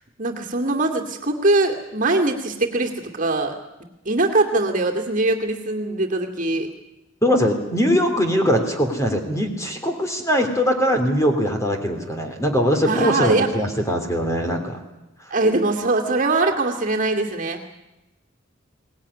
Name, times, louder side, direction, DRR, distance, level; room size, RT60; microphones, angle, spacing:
voice 1, 0.2-3.6 4.0-6.7 12.8-13.5 15.3-17.6, right 2 dB, 40° right, 3 dB, 2.4 m, -22 dB
voice 2, 7.2-14.8, equal, 15° left, 4 dB, 3.2 m, -21 dB
23.0 x 19.0 x 9.9 m, 0.98 s
head